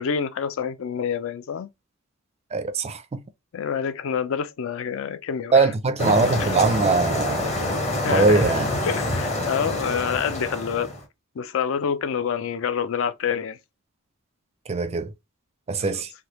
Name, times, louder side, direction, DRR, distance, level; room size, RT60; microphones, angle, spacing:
voice 1, 0.0-1.7 3.5-5.7 6.0-6.1 6.4-6.5 8.0-8.5 8.8-10.9 11.4-13.6 15.9-16.0, left 7 dB, 65° left, 0.4 m, -27 dB
voice 2, 2.5-3.2 5.5-7.5 8.1-8.7 14.7-15.1 15.7-16.1, right 3 dB, 30° right, 0.4 m, -21 dB
sound 1, 6.0-11.0, left 1 dB, 35° left, 0.9 m, -26 dB
3.3 x 2.2 x 3.0 m
head